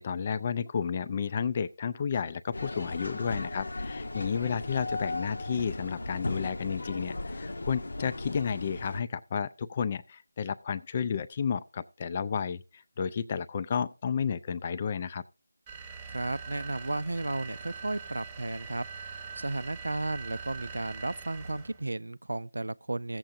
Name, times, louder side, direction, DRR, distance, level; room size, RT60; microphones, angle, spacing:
voice 1, 0.0-15.2, left 6 dB, 25° left, 0.4 m, -32 dB
sound 1, 2.5-9.0, left 2 dB, 60° left, 0.8 m, -36 dB
sound 2, 15.7-21.8, right 5 dB, 10° right, 1.1 m, -43 dB
voice 2, 16.1-23.2, right 2 dB, 75° right, 0.4 m, -34 dB
16.0 x 7.5 x 2.6 m
figure-of-eight pair, 165°, 0 cm